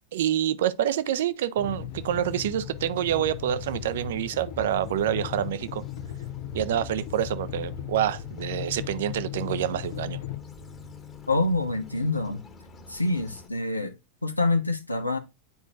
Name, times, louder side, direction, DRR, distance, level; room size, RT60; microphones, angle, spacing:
voice 1, 0.1-5.8 6.5-10.2, right 11 dB, 55° right, 0.6 m, -27 dB
sound 1, 1.6-10.4, left 15 dB, 50° left, 0.4 m, -37 dB
sound 2, 1.9-13.5, left 2 dB, 25° left, 1.5 m, -45 dB
voice 2, 11.3-12.4 12.9-13.9 14.2-15.2, left 2 dB, 85° left, 0.7 m, -26 dB
9.5 x 4.5 x 2.5 m
figure-of-eight pair, 90°, 0 cm